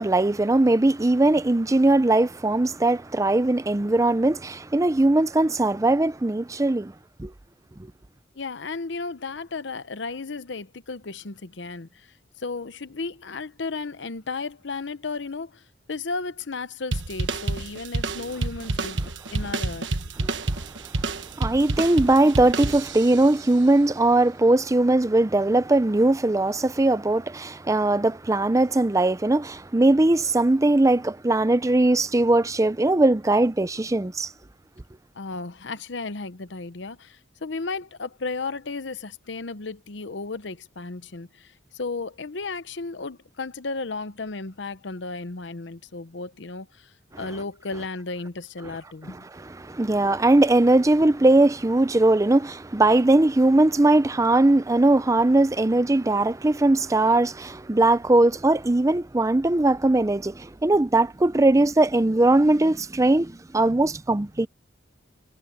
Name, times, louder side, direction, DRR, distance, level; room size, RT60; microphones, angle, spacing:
voice 1, 0.0-6.9 7.2-7.3 20.2-20.3 21.4-34.3 49.6-64.5, right 2 dB, 15° right, 0.5 m, -20 dB
voice 2, 8.3-12.1 12.4-15.6 15.9-19.9 35.1-46.9 47.2-49.2, left 3 dB, 65° left, 0.9 m, -34 dB
sound 1, 16.9-23.3, right 2 dB, 70° right, 1.3 m, -29 dB
head